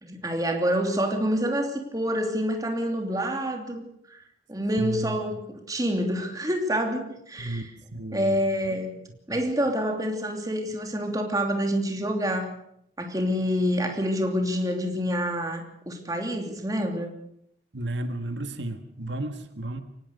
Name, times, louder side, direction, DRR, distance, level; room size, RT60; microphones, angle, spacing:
voice 1, 0.0-4.2 4.5-7.7 8.1-8.9 9.3-12.5 13.0-17.1, equal, 20° right, 4 dB, 2.9 m, -27 dB
voice 2, 4.8-5.2 7.4-7.6 7.9-8.4 9.3-9.4 17.7-19.8, right 1 dB, 75° right, 8 dB, 1.7 m, -33 dB
24.0 x 19.0 x 6.6 m, 0.73 s
head